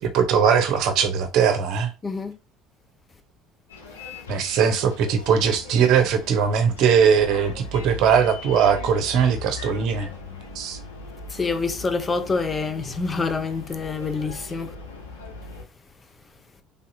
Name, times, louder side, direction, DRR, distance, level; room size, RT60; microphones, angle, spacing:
voice 1, 0.0-1.9 4.3-10.1 10.5-10.8, right 7 dB, 60° right, 0.7 m, -20 dB
voice 2, 2.0-2.3 11.3-14.7, left 4 dB, 25° left, 0.6 m, -26 dB
Bus, 3.7-15.6, left 3 dB, 90° left, 0.7 m, -39 dB
3.4 x 2.7 x 2.7 m
hypercardioid pair, 70°, 0 cm